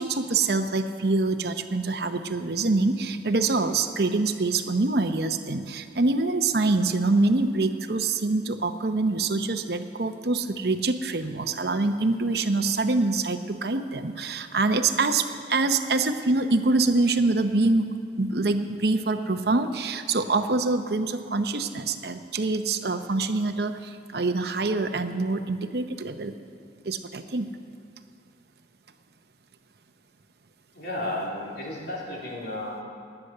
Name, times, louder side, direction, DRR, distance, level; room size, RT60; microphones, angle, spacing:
voice 1, 0.0-17.9 18.2-26.3 26.8-27.5, right 3 dB, 60° right, 8 dB, 0.8 m, -25 dB
voice 2, 30.7-32.8, left 1 dB, 60° left, -4 dB, 3.7 m, -33 dB
18.0 x 9.8 x 6.7 m, 2.3 s
head